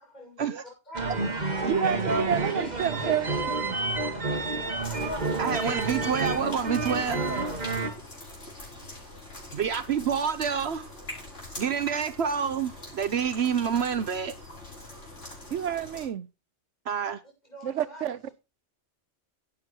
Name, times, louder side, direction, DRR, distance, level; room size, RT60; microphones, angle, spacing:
voice 1, 0.1-1.1 2.1-3.3 15.2-15.3 17.4-18.3, equal, 35° left, 7.1 m, -45 dB
sound 1, 0.9-7.9, right 3 dB, 35° right, 2.1 m, -29 dB
voice 2, 1.7-3.3 3.6-3.8 15.5-16.3 17.6-18.3, right 9 dB, 85° right, 1.1 m, -29 dB
sound 2, 4.8-16.1, left 1 dB, 90° left, 6.6 m, -44 dB
voice 3, 5.4-7.2 9.5-10.9 11.6-14.3 16.9-17.2, right 7 dB, 65° right, 1.1 m, -28 dB
11.5 x 9.0 x 4.5 m
omnidirectional pair, 1.2 m